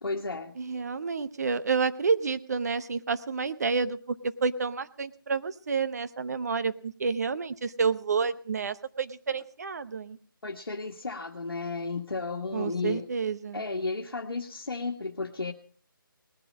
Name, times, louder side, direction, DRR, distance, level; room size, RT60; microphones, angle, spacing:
voice 1, 0.0-0.5 10.4-13.1 13.5-15.5, left 3 dB, 80° left, 1 dB, 1.5 m, -33 dB
voice 2, 0.6-10.2 12.5-13.6, right 5 dB, 45° right, 13 dB, 0.8 m, -29 dB
19.0 x 11.0 x 5.3 m, 0.43 s
figure-of-eight pair, 160°, 12 cm